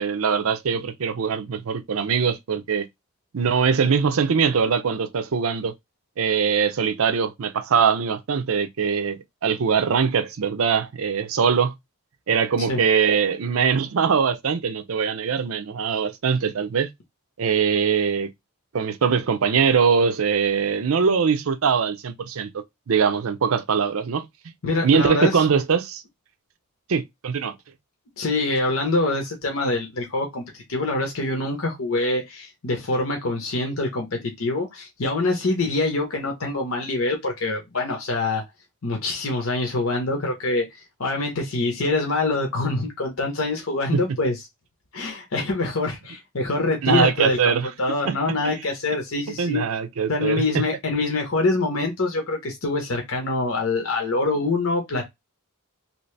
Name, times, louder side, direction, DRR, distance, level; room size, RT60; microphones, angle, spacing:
voice 1, 0.0-2.9 3.3-5.7 6.2-11.7 12.3-16.9 17.4-18.3 18.7-24.3 24.8-26.0 26.9-27.5 43.9-44.0 46.8-47.7 48.1-48.2 49.4-50.7, right 6 dB, 70° right, 0.5 m, -22 dB
voice 2, 24.6-25.4 28.2-38.4 38.8-44.4 44.9-49.6 50.1-55.1, left 2 dB, 65° left, 0.9 m, -25 dB
2.9 x 2.7 x 3.2 m
head